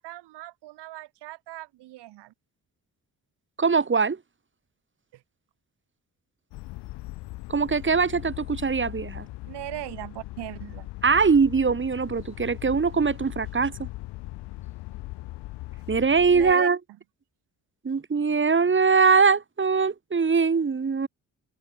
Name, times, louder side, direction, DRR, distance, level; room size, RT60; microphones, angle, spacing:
voice 1, 0.0-2.3 5.1-5.2 9.5-10.9 16.3-16.7, right 16 dB, 85° right, 3.2 m, -39 dB
voice 2, 3.6-4.2 7.5-9.3 11.0-13.9 15.9-16.8 17.8-21.1, right 5 dB, 30° right, 1.2 m, -22 dB
sound 1, 6.5-16.5, left 19 dB, 85° left, 1.4 m, -39 dB
supercardioid pair, 50°, 40 cm